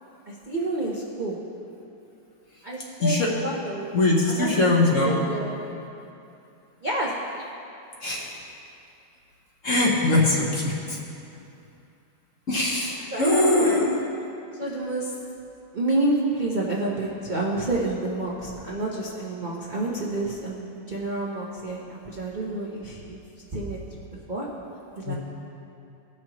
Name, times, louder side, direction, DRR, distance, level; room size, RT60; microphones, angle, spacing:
voice 1, 0.3-1.4 2.6-3.9 4.4-5.6 6.8-7.1 13.1-13.9 14.5-15.1 15.7-23.2 23.5-23.8 24.1-24.5 25.0-25.1, right 2 dB, 45° right, -4 dB, 0.6 m, -29 dB
voice 2, 3.0-3.3 3.9-5.2 8.0-8.4 9.6-11.0 12.5-14.0 25.1-25.2, left 2 dB, 45° left, -3 dB, 1.3 m, -22 dB
18.0 x 6.3 x 3.0 m, 2.7 s
omnidirectional pair, 2.2 m